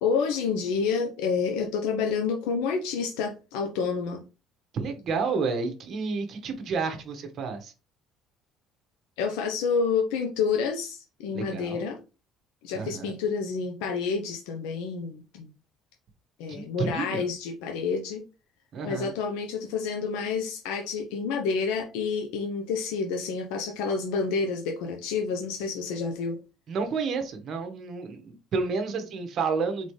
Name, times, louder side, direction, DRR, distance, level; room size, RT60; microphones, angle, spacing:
voice 1, 0.0-4.2 9.2-12.0 12.6-15.5 16.4-18.2 18.8-26.4, left 5 dB, 90° left, 2 dB, 0.7 m, -29 dB
voice 2, 4.7-7.7 11.3-11.8 12.7-13.1 16.5-17.3 18.7-19.1 26.7-29.9, right 4 dB, 50° right, 6 dB, 1.1 m, -30 dB
4.2 x 3.6 x 3.2 m, 0.31 s
cardioid pair, 105°, 0 cm